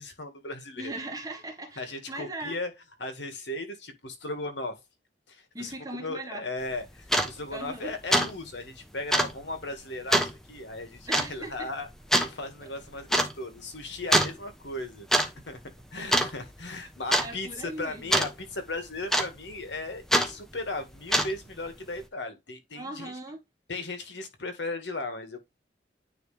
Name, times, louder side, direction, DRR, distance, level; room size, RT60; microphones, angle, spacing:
voice 1, 0.0-0.9 1.8-2.7 3.0-4.8 5.3-5.7 6.0-11.9 12.2-15.6 15.9-17.5 17.8-23.1 23.7-25.4, left 2 dB, 85° left, 1.9 m, -37 dB
voice 2, 0.8-2.6 5.5-6.4 7.5-7.9 11.1-11.7 17.2-18.2 22.7-23.4, right 2 dB, 20° right, 1.4 m, -39 dB
sound 1, 6.6-6.7 7.0-7.3 7.7-7.8 8.1-8.3 8.6-8.7 9.1-9.3 10.1-10.3 11.1-11.3 12.1-12.3 13.1-13.3 14.1-14.4 14.9-15.3 15.5-15.8 16.1-16.6 17.1-17.3 18.1-18.3 19.1-19.5 20.1-20.3 20.9-21.5, equal, 5° left, 0.9 m, -23 dB
9.4 x 3.3 x 3.3 m
head